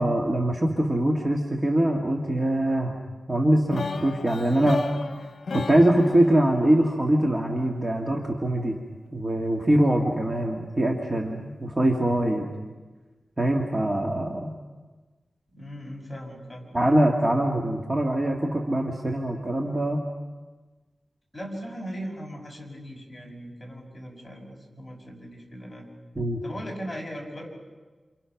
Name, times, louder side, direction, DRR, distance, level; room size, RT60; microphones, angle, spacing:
voice 1, 0.0-3.0 3.3-4.8 5.5-8.7 9.1-12.5 13.4-14.6 16.7-20.0 26.2-26.4, right 1 dB, 25° right, 1 dB, 1.9 m, -23 dB
sound 1, 3.7-7.7, left 4 dB, 85° left, 0.8 m, -35 dB
voice 2, 15.5-16.7 21.3-25.9 26.4-27.5, equal, 10° left, -2 dB, 5.9 m, -38 dB
28.5 x 28.0 x 5.9 m, 1.3 s
wide cardioid pair, 120°, 0 cm